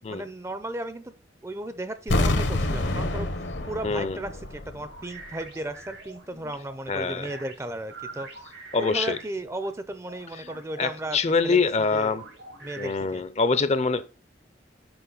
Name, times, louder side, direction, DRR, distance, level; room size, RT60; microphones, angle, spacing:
voice 1, 0.1-1.1 1.4-11.6 11.9-12.2 12.6-13.2, right 1 dB, 15° right, 0.4 m, -35 dB
sound 1, 2.1-5.0 5.2-5.3, left 1 dB, 75° left, 1.0 m, -27 dB
sound 2, 3.2-9.7 10.0-13.2, right 3 dB, 90° right, 2.7 m, -46 dB
voice 2, 3.8-4.2 6.9-7.3 8.7-9.2 10.8-12.2 12.8-14.0, left 4 dB, 35° left, 0.5 m, -24 dB
7.0 x 4.9 x 3.9 m
head